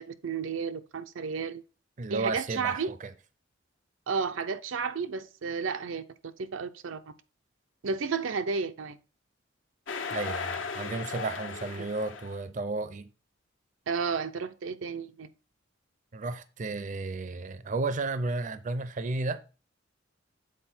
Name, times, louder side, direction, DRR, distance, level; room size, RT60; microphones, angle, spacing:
voice 1, 0.0-1.6 2.1-2.9 4.1-7.1 7.8-9.0 13.9-15.3, right 5 dB, 90° right, 0.5 m, -32 dB
voice 2, 2.0-3.1 10.1-13.1 16.1-19.4, right 3 dB, 40° right, 0.5 m, -33 dB
sound 1, 9.9-12.4, left 5 dB, 70° left, 0.9 m, -36 dB
7.5 x 4.0 x 4.3 m
head